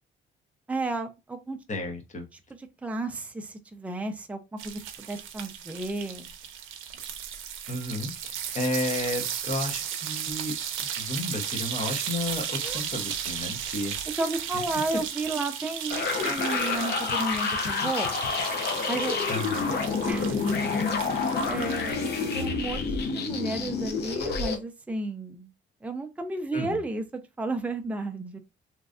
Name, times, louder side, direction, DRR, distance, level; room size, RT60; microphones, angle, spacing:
voice 1, 0.7-1.6 2.8-6.3 12.6-12.8 14.1-18.1 18.9-19.2 20.1-20.7 21.5-25.5 25.8-28.4, right 2 dB, 5° right, 0.5 m, -33 dB
voice 2, 1.7-2.3 7.7-10.5 10.8-14.0 14.5-14.6 19.3-19.7 22.4-22.6 26.5-26.8, left 1 dB, 35° left, 1.0 m, -32 dB
sound 1, 4.6-22.5, right 9 dB, 80° right, 0.5 m, -35 dB
sound 2, 15.9-24.6, left 4 dB, 55° left, 0.7 m, -28 dB
3.0 x 2.6 x 2.4 m
cardioid pair, 90°, 20 cm